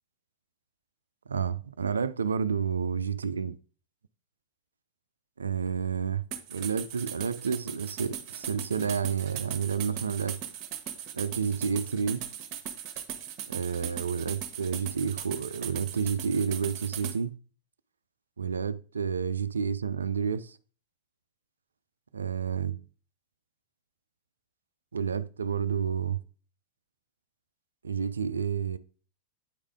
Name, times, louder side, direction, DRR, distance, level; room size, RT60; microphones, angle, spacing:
voice 1, 1.3-3.5 5.4-10.4 11.1-12.2 13.5-17.4 18.4-20.6 22.1-22.8 24.9-26.2 27.8-28.8, right 6 dB, 75° right, 0.4 m, -30 dB
sound 1, 6.3-17.2, right 9 dB, 40° right, 1.1 m, -39 dB
8.8 x 4.8 x 3.6 m
figure-of-eight pair, 90°, 0 cm